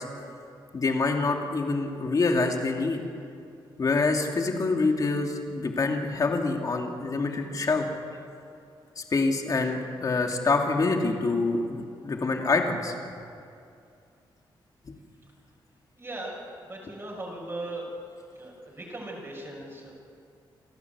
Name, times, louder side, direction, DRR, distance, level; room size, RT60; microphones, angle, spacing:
voice 1, 0.7-3.0 3.8-7.9 9.0-12.9 14.9-15.0, left 3 dB, 40° left, 2 dB, 2.7 m, -26 dB
voice 2, 16.0-17.8 18.3-20.0, right 2 dB, 30° right, -3 dB, 6.1 m, -38 dB
28.5 x 12.5 x 8.2 m, 2.4 s
cardioid pair, 100°, 9 cm